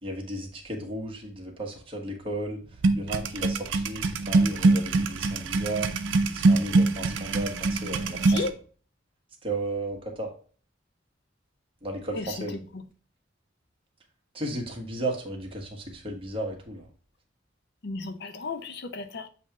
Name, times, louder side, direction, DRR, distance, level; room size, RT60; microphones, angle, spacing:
voice 1, 0.0-2.6 2.9-5.9 6.3-8.4 9.4-10.3 11.8-12.6 14.3-16.9, right 2 dB, 30° right, 1.4 m, -34 dB
sound 1, 2.8-8.5, right 3 dB, 80° right, 0.6 m, -23 dB
voice 2, 17.8-19.3, left 3 dB, 60° left, 0.6 m, -33 dB
7.3 x 2.9 x 4.7 m
head